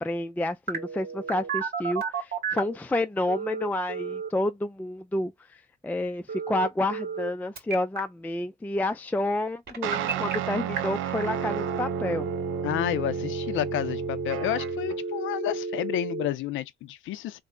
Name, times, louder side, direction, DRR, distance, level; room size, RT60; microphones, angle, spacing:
voice 1, 0.0-5.6 5.8-12.3, left 1 dB, 10° left, 0.3 m, -29 dB
Telephone, 0.7-2.8 3.3-4.3 6.3-7.3 7.6-8.0 9.7-10.3 10.8-10.9 11.2-16.3, right 4 dB, 50° right, 1.8 m, -32 dB
sound 1, 9.8-15.0, right 11 dB, 85° right, 0.5 m, -33 dB
voice 2, 12.6-17.4, left 12 dB, 80° left, 0.5 m, -30 dB
3.4 x 2.1 x 3.7 m
cardioid pair, 90°, 20 cm